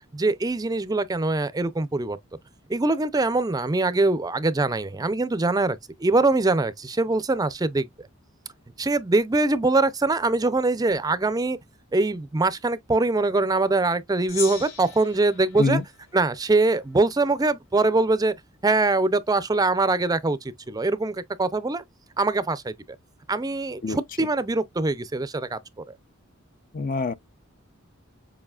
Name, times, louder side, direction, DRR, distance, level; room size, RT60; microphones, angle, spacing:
voice 1, 0.1-2.2 2.7-7.9 8.8-11.6 11.9-15.8 16.1-18.3 18.6-20.4 20.7-21.8 22.2-22.7 23.3-25.6, right 3 dB, 20° right, 0.5 m, -23 dB
Gong, 14.3-16.9, left 7 dB, 75° left, 2.8 m, -38 dB
voice 2, 26.7-27.1, left 4 dB, 45° left, 0.5 m, -24 dB
7.2 x 2.7 x 2.3 m
head